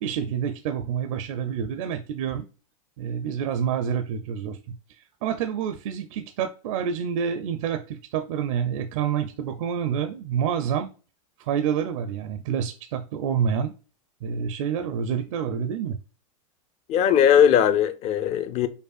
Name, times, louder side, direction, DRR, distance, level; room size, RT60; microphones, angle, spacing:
voice 1, 0.0-2.4 3.0-10.9 11.4-13.7 14.2-16.0, right 8 dB, 65° right, 0.5 m, -28 dB
voice 2, 16.9-18.7, left 9 dB, 35° left, 0.5 m, -19 dB
5.2 x 2.2 x 2.3 m
hypercardioid pair, 120°, 18 cm